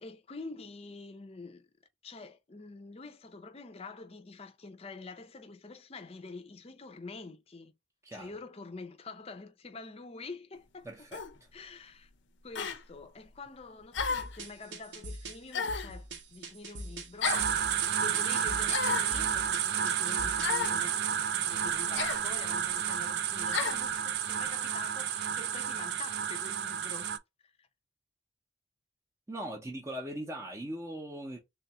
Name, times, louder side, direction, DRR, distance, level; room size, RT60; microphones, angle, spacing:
voice 1, 0.0-1.7 2.0-7.7 8.1-10.9 11.5-12.1 12.4-27.1 27.4-27.7, left 3 dB, 30° left, 0.6 m, -46 dB
voice 2, 10.8-11.2 20.9-21.2 29.3-31.4, right 1 dB, 15° right, 0.7 m, -40 dB
sound 1, 11.1-11.3 12.5-12.8 13.9-14.4 15.5-15.9 17.2-17.5 18.7-19.1 20.4-20.8 21.9-22.2 23.5-23.8, left 6 dB, 80° left, 0.5 m, -32 dB
sound 2, 14.0-20.7, right 1 dB, 75° right, 1.0 m, -44 dB
sound 3, 17.2-27.2, right 8 dB, 60° right, 0.4 m, -31 dB
3.4 x 2.4 x 4.1 m
head